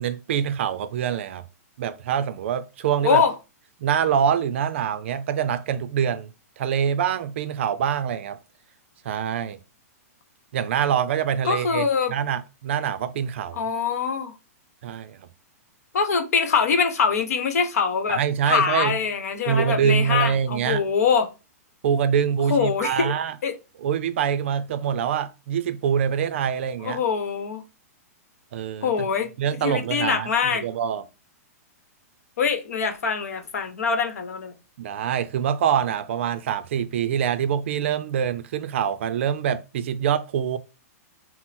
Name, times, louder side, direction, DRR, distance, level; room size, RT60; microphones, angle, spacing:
voice 1, 0.0-1.4 1.8-3.2 3.8-6.3 6.6-8.4 9.0-9.6 10.5-13.6 14.8-15.2 18.1-19.0 19.5-20.8 21.8-23.4 23.8-27.0 28.5-29.1 29.4-31.1 34.8-40.6, right 8 dB, 50° right, 0.4 m, -25 dB
voice 2, 11.4-12.1 13.6-14.3 15.9-18.2 18.5-21.3 22.5-23.1 23.4-23.6 26.8-27.6 28.8-29.3 29.6-30.6 32.4-34.5, left 6 dB, 70° left, 0.9 m, -23 dB
6.0 x 2.0 x 4.1 m
hypercardioid pair, 165°, 9 cm